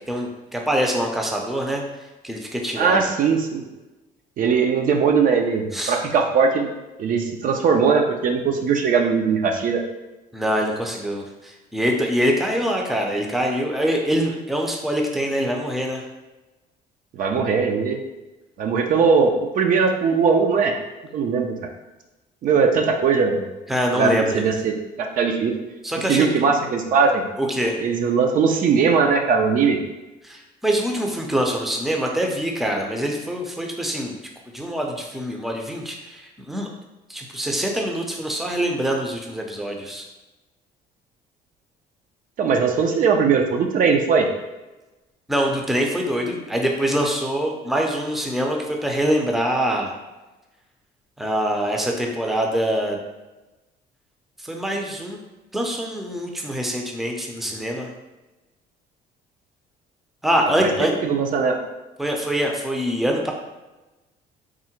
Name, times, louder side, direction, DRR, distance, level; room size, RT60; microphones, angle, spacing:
voice 1, 0.1-1.8 2.2-3.0 5.7-6.0 10.3-16.0 23.7-24.4 25.8-26.3 27.4-27.7 30.2-34.2 34.5-36.7 37.1-40.0 45.3-49.9 51.2-53.0 54.4-55.2 55.5-57.9 60.2-60.9 62.0-63.3, equal, ahead, 1 dB, 0.5 m, -24 dB
voice 2, 2.8-3.6 4.4-6.7 7.0-9.8 17.1-18.0 18.6-20.7 21.1-21.7 22.4-23.4 23.9-25.5 26.1-27.2 27.8-29.8 42.4-44.3 60.4-60.5 60.8-61.6, right 5 dB, 55° right, 3 dB, 0.5 m, -20 dB
3.7 x 2.1 x 4.3 m, 1.1 s
cardioid pair, 110°, 17 cm